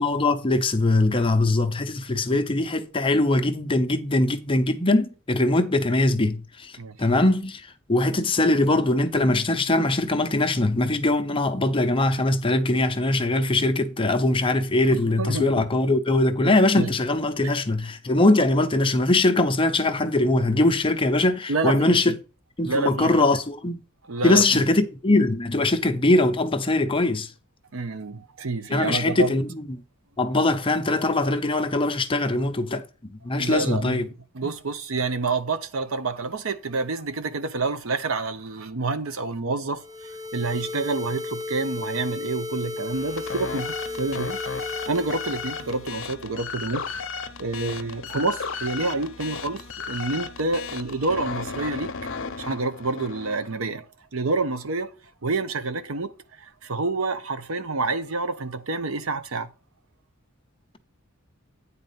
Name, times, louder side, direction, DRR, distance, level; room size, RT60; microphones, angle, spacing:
voice 1, 0.0-6.7 7.0-7.6 7.9-22.1 22.6-23.8 24.2-27.3 28.7-29.5 30.2-32.8 33.2-34.1, left 2 dB, 25° left, 0.7 m, -21 dB
voice 2, 14.9-15.6 16.4-16.9 17.4-17.5 21.5-22.2 22.6-23.3 24.1-24.6 27.7-29.3 33.4-34.0 34.3-44.4 44.8-46.9 47.4-51.9 52.4-53.8 54.1-54.9 55.2-59.5, right 3 dB, 80° right, 0.8 m, -28 dB
sound 1, 39.7-45.9, left 3 dB, 20° right, 0.5 m, -34 dB
sound 2, 42.9-53.5, left 5 dB, 65° left, 0.8 m, -35 dB
9.3 x 4.1 x 5.7 m
head